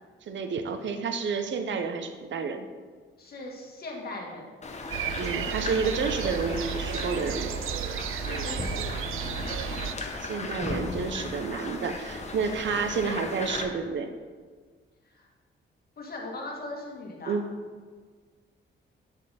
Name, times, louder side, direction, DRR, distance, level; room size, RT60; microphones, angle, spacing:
voice 1, 0.3-2.7 5.2-7.5 10.2-14.1 17.3-17.5, right 5 dB, 65° right, 7 dB, 0.8 m, -30 dB
voice 2, 3.2-4.5 8.1-9.6 15.1-15.3 16.0-17.3, left 2 dB, 50° left, -1 dB, 2.1 m, -40 dB
sound 1, 4.6-13.6, left 3 dB, 35° left, 1.1 m, -36 dB
sound 2, 4.9-9.9, right 9 dB, 90° right, 0.4 m, -33 dB
8.8 x 6.5 x 4.2 m, 1.6 s
cardioid pair, 105°, 21 cm